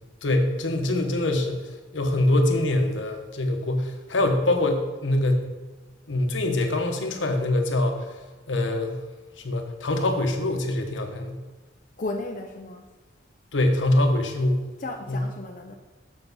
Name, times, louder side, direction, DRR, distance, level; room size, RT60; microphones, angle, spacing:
voice 1, 0.2-1.7 1.9-5.4 6.1-8.1 8.5-9.0 9.4-11.4 13.5-14.6 15.1-15.2, left 1 dB, 85° left, 5 dB, 1.0 m, -24 dB
voice 2, 12.0-12.8 14.8-15.8, left 2 dB, 45° left, 2 dB, 0.6 m, -34 dB
7.0 x 6.7 x 4.1 m, 1.3 s
head